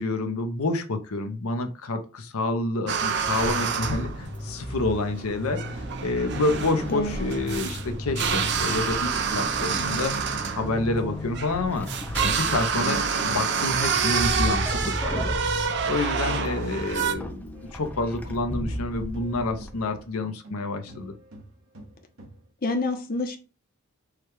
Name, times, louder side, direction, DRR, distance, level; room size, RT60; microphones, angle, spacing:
voice 1, 0.0-10.2 10.6-11.9 12.2-15.4 15.9-21.1, left 2 dB, 75° left, 0.7 m, -28 dB
Vehicle / Accelerating revving vroom / Squeak, 2.9-20.1, equal, 5° left, 0.5 m, -34 dB
sound 1, 2.9-17.1, right 6 dB, 50° right, 0.6 m, -28 dB
voice 2, 6.9-7.3 22.6-23.4, left 2 dB, 40° left, 0.7 m, -28 dB
sound 2, 17.5-20.6 20.9-22.5, right 1 dB, 70° right, 1.2 m, -48 dB
4.8 x 2.3 x 4.6 m
head